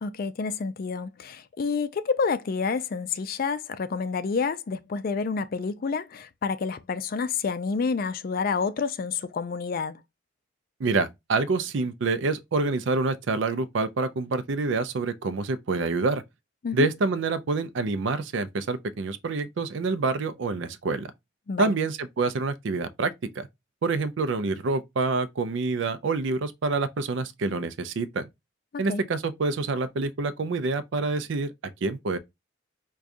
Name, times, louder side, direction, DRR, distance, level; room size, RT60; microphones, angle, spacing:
voice 1, 0.0-10.0 16.6-16.9 21.5-21.7 28.7-29.0, left 5 dB, 45° left, 0.3 m, -29 dB
voice 2, 10.8-16.2 16.7-21.1 21.6-23.5 23.8-28.3 28.8-32.2, right 3 dB, 65° right, 0.4 m, -27 dB
4.8 x 2.3 x 2.5 m
head